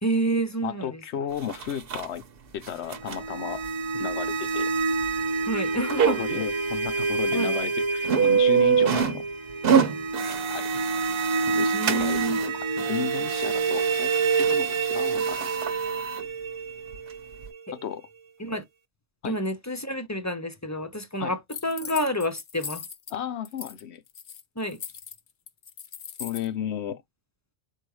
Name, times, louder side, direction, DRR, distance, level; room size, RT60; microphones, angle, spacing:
voice 1, 0.0-1.0 5.5-6.2 7.3-7.5 11.7-12.4 17.7-17.8 18.4-18.6 19.2-22.8 24.6-24.8, right 1 dB, 20° left, 0.6 m, -28 dB
voice 2, 0.6-2.2 2.5-3.6 3.9-4.7 6.1-9.2 10.5-10.7 11.5-12.3 12.5-14.1 14.4-15.5 17.7-18.1 19.2-19.4 21.2-21.4 23.1-24.0 26.2-27.0, left 9 dB, 85° left, 1.0 m, -34 dB
sound 1, 1.4-2.1 2.6-3.2 3.6-3.7 4.5-4.6 5.0-5.2 5.9-6.4 6.9-7.0 7.3-7.6 8.0-9.2 9.5-12.5 12.8-16.2 16.9-17.0 17.4-17.5, right 7 dB, 60° right, 1.0 m, -26 dB
sound 2, 2.9-17.8, right 4 dB, 35° right, 0.5 m, -28 dB
sound 3, 21.5-23.1 23.4-23.8 24.1-26.5, left 7 dB, 55° left, 0.8 m, -39 dB
4.7 x 2.3 x 4.7 m
omnidirectional pair, 1.1 m